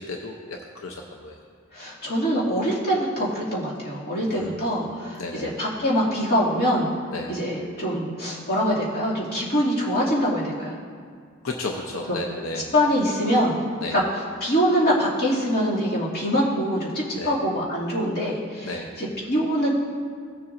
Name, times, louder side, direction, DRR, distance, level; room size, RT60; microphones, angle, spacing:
voice 1, 0.0-1.4 4.3-4.5 4.8-4.9 5.2-5.5 7.1-7.3 11.4-12.7 13.8-14.0 17.1-17.3 18.6-18.9, left 2 dB, 90° left, 1 dB, 0.7 m, -33 dB
voice 2, 1.7-6.9 7.3-10.8 12.1-12.2 12.7-13.5 13.9-14.0 14.4-19.7, equal, 50° left, -7 dB, 2.5 m, -24 dB
17.0 x 7.0 x 2.6 m, 2.1 s
head